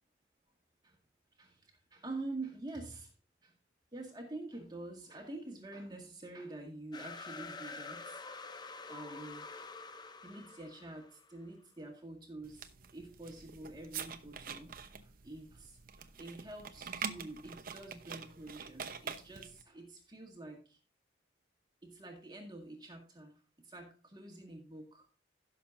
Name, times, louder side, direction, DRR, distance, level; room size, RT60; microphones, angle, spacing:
voice 1, 1.3-3.1 3.4-3.5 3.9-8.2 8.9-9.5 10.2-20.8 21.8-23.3 23.6-25.1, right 2 dB, 20° right, 2 dB, 1.9 m, -47 dB
sound 1, 6.9-11.4, left 4 dB, 20° left, 0.6 m, -47 dB
sound 2, 12.4-19.6, right 6 dB, 50° right, 0.9 m, -45 dB
16.5 x 6.6 x 2.6 m, 0.36 s
head